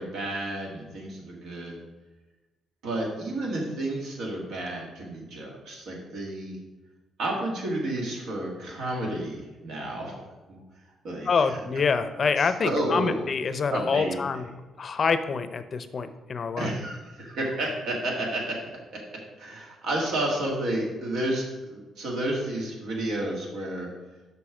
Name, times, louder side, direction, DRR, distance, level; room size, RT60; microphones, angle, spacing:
voice 1, 0.0-1.8 2.8-6.6 7.2-10.6 11.0-11.6 12.4-13.3 13.7-14.4 16.6-18.6 18.9-23.9, right 1 dB, 85° right, -1 dB, 2.0 m, -31 dB
voice 2, 11.3-14.4 14.8-16.7, left 5 dB, 45° left, 11 dB, 0.5 m, -26 dB
6.1 x 5.4 x 4.9 m, 1.1 s
cardioid pair, 90°, 0 cm